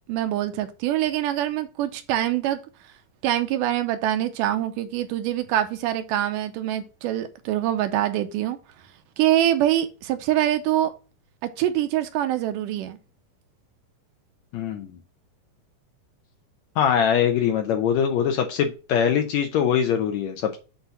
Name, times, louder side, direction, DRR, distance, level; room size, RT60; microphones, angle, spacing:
voice 1, 0.1-2.6 3.2-8.6 9.2-10.9 11.6-13.0, right 12 dB, 85° right, 2.2 m, -24 dB
voice 2, 14.5-15.0 16.8-20.6, left 8 dB, 75° left, 1.7 m, -22 dB
8.0 x 2.8 x 5.5 m
omnidirectional pair, 3.8 m